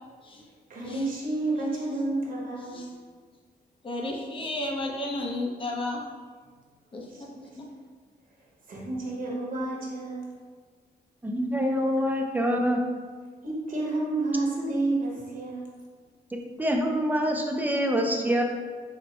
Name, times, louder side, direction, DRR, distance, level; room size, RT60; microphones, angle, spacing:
voice 1, 0.7-2.8 7.0-7.2 7.5-7.6 8.7-10.3 13.4-15.7, right 2 dB, 55° right, -4 dB, 0.9 m, -30 dB
voice 2, 3.8-6.0 6.9-7.0 7.6-7.7, left 2 dB, 30° left, -1 dB, 0.7 m, -32 dB
voice 3, 11.2-12.8 16.3-18.4, equal, 10° right, 2 dB, 0.4 m, -26 dB
4.1 x 2.1 x 4.4 m, 1.5 s
wide cardioid pair, 120°, 17 cm